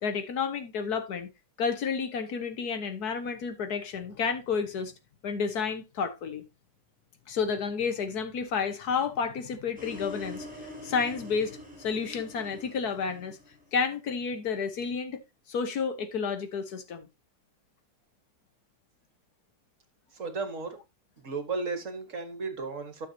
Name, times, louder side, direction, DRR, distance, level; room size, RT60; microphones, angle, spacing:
voice 1, 0.0-1.3 1.6-4.9 5.2-6.4 7.3-10.5 10.8-13.4 13.7-15.2 15.5-17.1, left 5 dB, 70° left, 1.6 m, -31 dB
sound 1, 9.8-13.9, left 1 dB, 5° right, 3.2 m, -44 dB
voice 2, 20.1-20.8 21.2-23.1, right 4 dB, 50° right, 1.7 m, -34 dB
12.0 x 6.6 x 2.7 m
omnidirectional pair, 1.8 m